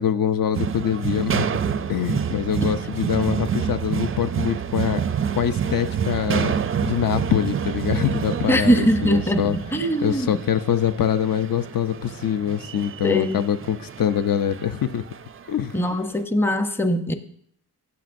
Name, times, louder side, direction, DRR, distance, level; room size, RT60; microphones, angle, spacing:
voice 1, 0.0-1.5 1.9-5.0 5.3-9.6 10.0-15.0 15.5-15.7, left 9 dB, 60° left, 10 dB, 0.5 m, -24 dB
sound 1, 0.5-15.9, right 7 dB, 35° right, 0.4 m, -28 dB
voice 2, 8.5-10.4 13.0-13.4 15.7-17.1, equal, 5° left, 8 dB, 0.6 m, -21 dB
15.0 x 8.2 x 2.6 m, 0.65 s
wide cardioid pair, 100°, 38 cm